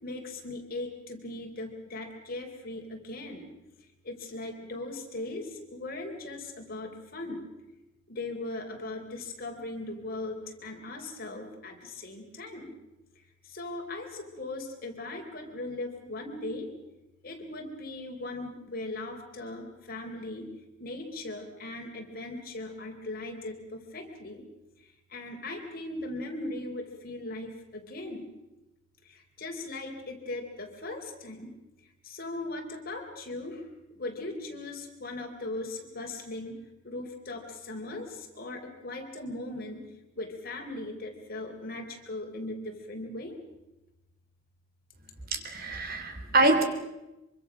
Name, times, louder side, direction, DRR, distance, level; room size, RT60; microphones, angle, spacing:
voice 1, 0.0-3.5 4.0-7.5 8.1-12.7 13.4-16.7 17.2-20.5 20.8-24.4 25.1-28.3 29.0-31.5 32.0-33.6 33.9-36.6 36.8-39.8 40.2-43.4 45.5-46.3, left 2 dB, 50° left, 3 dB, 3.9 m, -39 dB
voice 2, 45.3-46.6, right 2 dB, 50° right, 6 dB, 3.3 m, -25 dB
25.0 x 24.5 x 6.3 m, 0.97 s
head